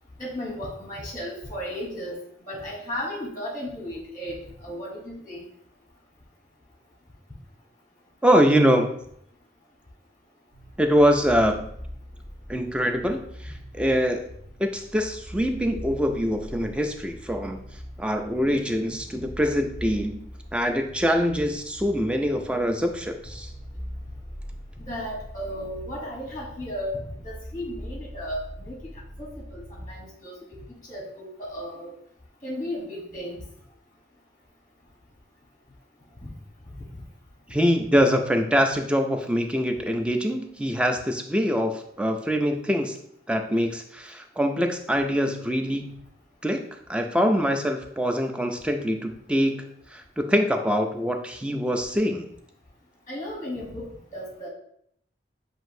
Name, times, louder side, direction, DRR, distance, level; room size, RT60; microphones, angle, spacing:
voice 1, 0.2-2.2 2.5-5.4 24.8-27.0 27.2-28.8 29.2-30.6 30.9-31.9 32.4-33.4 36.2-36.3 53.1-54.5, equal, 20° left, -3 dB, 0.9 m, -35 dB
voice 2, 8.2-9.0 10.8-11.7 12.5-14.3 14.6-17.6 18.0-20.2 20.5-23.5 37.5-43.0 43.3-46.0 46.4-46.6 46.9-52.3, equal, 5° right, 5 dB, 0.3 m, -24 dB
sound 1, 10.5-29.9, equal, 35° right, 1.5 m, -42 dB
7.6 x 2.6 x 2.6 m, 0.70 s
head